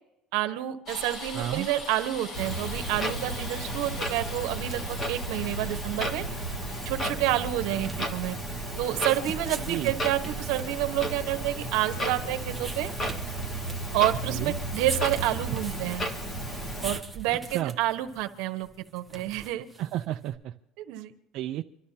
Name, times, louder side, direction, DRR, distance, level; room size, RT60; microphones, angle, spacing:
voice 1, 0.3-6.2 6.8-8.4 8.8-12.9 13.9-16.0 16.8-18.7 18.9-19.7 20.8-21.1, right 14 dB, 75° right, 8 dB, 1.2 m, -29 dB
sound 1, 0.8-7.0, left 1 dB, 40° left, 1.8 m, -41 dB
voice 2, 1.3-1.7 9.7-9.9 14.3-14.5 17.5-17.7 19.8-20.5 21.3-21.6, right 13 dB, 55° right, 3 dB, 0.6 m, -31 dB
Clock, 2.3-17.0, right 1 dB, 25° left, 1.6 m, -33 dB
sound 2, 4.6-20.4, right 4 dB, 5° right, 1.1 m, -44 dB
27.0 x 12.5 x 2.9 m, 0.88 s
cardioid pair, 150°, 0 cm